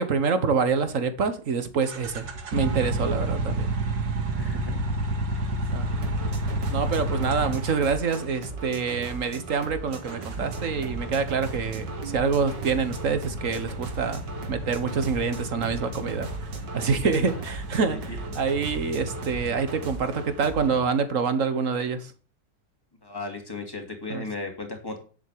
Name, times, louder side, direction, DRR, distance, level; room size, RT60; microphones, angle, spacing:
voice 1, 0.0-2.2 2.5-3.7 4.7-4.8 5.7-5.9 6.7-16.3 16.7-22.1 24.1-24.2, right 5 dB, 50° right, 1.5 m, -26 dB
sound 1, 1.8-8.2 10.0-20.1, right 2 dB, 90° right, 2.7 m, -31 dB
voice 2, 4.4-5.4 17.0-17.3 17.9-18.2 23.0-25.0, left 3 dB, 10° left, 2.8 m, -36 dB
sound 2, 5.8-20.8, right 3 dB, 70° right, 2.6 m, -38 dB
10.0 x 7.8 x 6.7 m
omnidirectional pair, 1.9 m